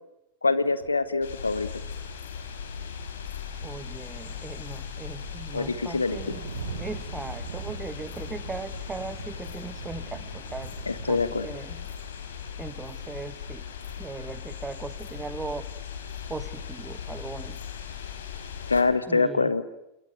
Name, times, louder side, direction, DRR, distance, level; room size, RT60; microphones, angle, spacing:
voice 1, 0.4-1.7 5.5-6.2 10.9-11.5 18.7-19.6, left 3 dB, 80° left, 13 dB, 1.6 m, -24 dB
sound 1, 0.8-1.6 2.2-3.3 3.6-11.2, right 7 dB, 60° right, 4.8 m, -43 dB
sound 2, 1.2-18.8, left 7 dB, 65° left, 4.3 m, -38 dB
voice 2, 3.6-6.4 6.8-10.7 11.1-11.9 12.6-13.7 14.0-15.7 16.3-17.6 19.1-19.5, right 4 dB, 15° right, 14 dB, 1.4 m, -38 dB
28.5 x 21.5 x 9.2 m, 0.87 s
figure-of-eight pair, 90°, 0 cm